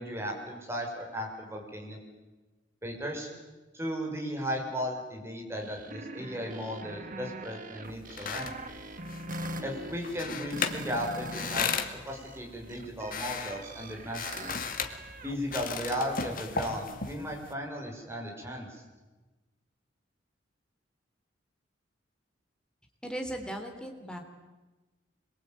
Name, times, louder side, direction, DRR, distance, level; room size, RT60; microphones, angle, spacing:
voice 1, 0.0-2.0 2.8-3.3 3.7-8.5 9.6-14.5 15.2-18.8, equal, 15° right, 1 dB, 6.0 m, -36 dB
sound 1, 5.6-11.8 12.1-15.4, right 1 dB, 45° right, 2.2 m, -42 dB
sound 2, 7.8-17.5, left 6 dB, 50° left, 2.2 m, -37 dB
voice 2, 23.0-24.2, right 1 dB, 5° left, 3 dB, 3.6 m, -37 dB
26.0 x 22.5 x 9.1 m, 1.2 s
head